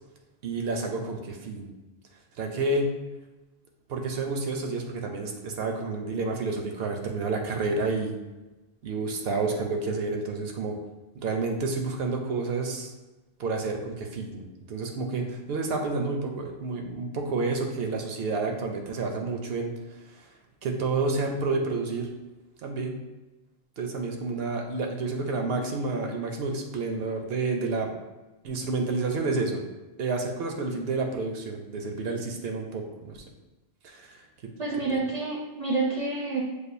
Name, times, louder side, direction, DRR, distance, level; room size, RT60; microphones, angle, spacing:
voice 1, 0.4-1.7 2.4-2.9 3.9-8.2 8.8-10.8 11.2-12.9 13.4-19.7 20.1-20.3 20.6-22.1 22.6-23.0 23.8-28.0 28.4-29.6 30.0-33.2 33.8-34.2 34.9-35.0, right 3 dB, 75° right, 3 dB, 0.8 m, -30 dB
voice 2, 34.6-36.4, right 3 dB, 40° right, -2 dB, 0.5 m, -28 dB
6.5 x 2.5 x 2.5 m, 1.1 s
omnidirectional pair, 1.0 m